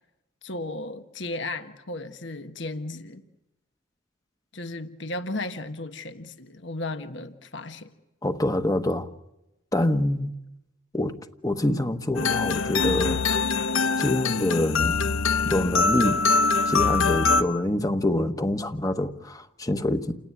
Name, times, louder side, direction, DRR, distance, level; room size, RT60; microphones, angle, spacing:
voice 1, 0.4-3.2 4.5-7.9, left 2 dB, 60° left, 1.4 m, -35 dB
voice 2, 8.2-9.1 9.7-10.3 10.9-13.2 14.0-15.0 15.4-16.2 16.7-20.1, left 1 dB, 15° left, 1.2 m, -26 dB
sound 1, 12.2-17.4, left 4 dB, 80° left, 1.0 m, -23 dB
29.5 x 17.5 x 9.8 m
head